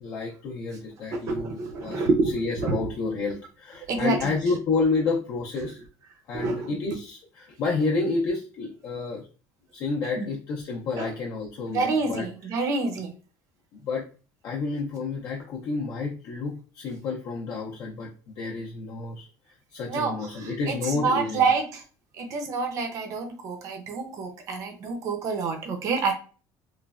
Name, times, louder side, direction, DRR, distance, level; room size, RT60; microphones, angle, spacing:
voice 1, 0.0-2.1 2.3-5.8 6.3-9.2 9.7-12.6 13.7-14.1 14.4-19.3 19.7-21.5, left 4 dB, 45° left, -2 dB, 0.4 m, -30 dB
voice 2, 1.1-2.9 3.9-4.3 6.3-6.8 10.2-10.3 11.0-11.1 11.7-13.1 19.9-21.8 22.2-26.1, right 4 dB, 40° right, 5 dB, 0.5 m, -27 dB
3.1 x 2.0 x 2.3 m, 0.37 s
cardioid pair, 165°, 8 cm